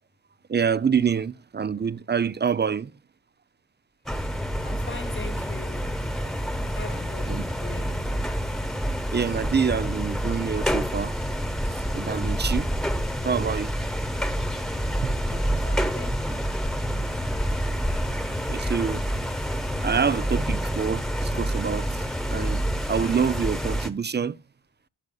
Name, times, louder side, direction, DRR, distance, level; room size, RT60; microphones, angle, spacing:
voice 1, 0.5-2.9 7.3-7.4 9.1-11.2 11.9-12.7 13.2-13.7 15.0-15.4 18.5-19.0 19.8-22.0 22.3-24.4, right 6 dB, 25° right, 0.4 m, -26 dB
sound 1, 4.1-23.9, equal, ahead, 1.1 m, -28 dB
voice 2, 4.6-5.9 6.8-8.2 14.8-14.9 15.3-16.4, left 3 dB, 25° left, 1.2 m, -41 dB
15.0 x 6.3 x 2.3 m
cardioid pair, 70°, 42 cm